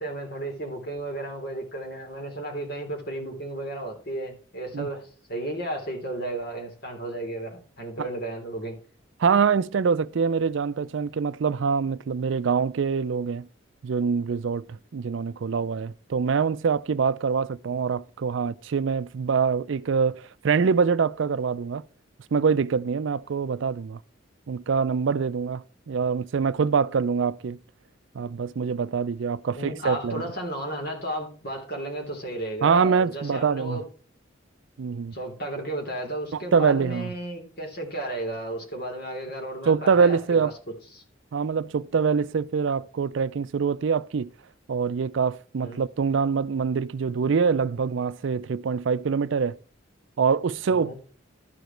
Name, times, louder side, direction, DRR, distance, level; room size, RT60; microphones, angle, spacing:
voice 1, 0.0-8.8 29.6-33.8 35.1-40.5 40.9-41.0 45.6-45.8 50.7-51.0, right 1 dB, 50° left, 3.3 m, -33 dB
voice 2, 9.2-13.5 13.8-21.8 22.3-24.0 24.5-27.6 28.1-30.2 32.6-33.8 34.8-35.1 36.3-37.1 39.7-40.5 41.3-44.3 44.7-49.6 50.2-51.0, right 5 dB, 70° right, 0.4 m, -24 dB
12.5 x 5.0 x 4.4 m
head